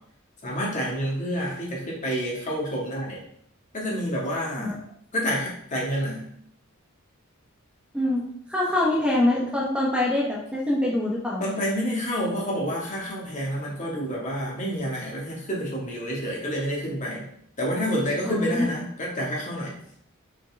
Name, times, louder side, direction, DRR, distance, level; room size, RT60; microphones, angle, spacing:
voice 1, 0.4-3.2 3.7-4.8 5.1-6.2 11.4-17.3 17.6-19.7, equal, 35° left, -3 dB, 2.1 m, -28 dB
voice 2, 7.9-11.4 18.2-18.7, left 1 dB, 5° right, -4 dB, 1.1 m, -24 dB
6.4 x 5.7 x 3.6 m, 0.69 s
head